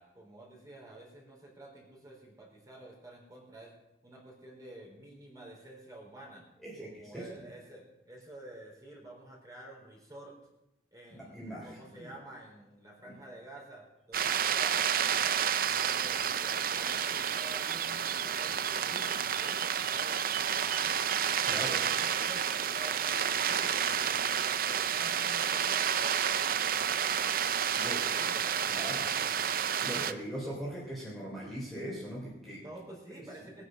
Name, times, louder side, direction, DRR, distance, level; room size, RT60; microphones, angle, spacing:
voice 1, 0.0-3.7 4.0-6.5 6.8-10.4 10.9-15.3 15.7-21.0 21.5-29.6 29.9-30.1 32.6-33.6, right 1 dB, 20° right, -2 dB, 4.2 m, -50 dB
voice 2, 6.6-7.4 11.1-12.1 13.0-13.1 21.4-21.8 27.7-28.0 28.7-29.1 29.8-32.6, equal, ahead, -5 dB, 3.4 m, -40 dB
sound 1, 14.1-30.1, right 8 dB, 50° right, 0.6 m, -30 dB
20.5 x 9.8 x 5.3 m, 0.92 s
head